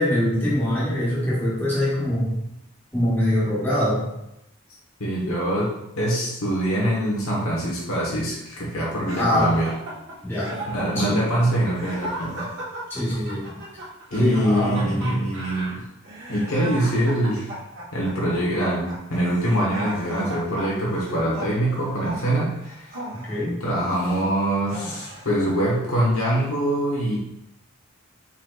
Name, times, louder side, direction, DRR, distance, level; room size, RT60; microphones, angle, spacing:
voice 1, 0.0-2.4 2.9-4.0 9.1-9.5 10.2-10.5 10.9-11.2 12.9-13.6 14.2-15.2 23.3-23.5, left 1 dB, 10° left, -9 dB, 1.1 m, -23 dB
voice 2, 5.0-9.7 10.7-12.5 14.1-15.8 16.3-17.5 17.9-22.9 23.6-27.2, right 1 dB, 80° left, -5 dB, 1.1 m, -24 dB
sound 1, 9.1-24.2 24.7-25.4, right 1 dB, 60° right, 1.3 m, -36 dB
4.5 x 4.0 x 2.3 m, 0.84 s
head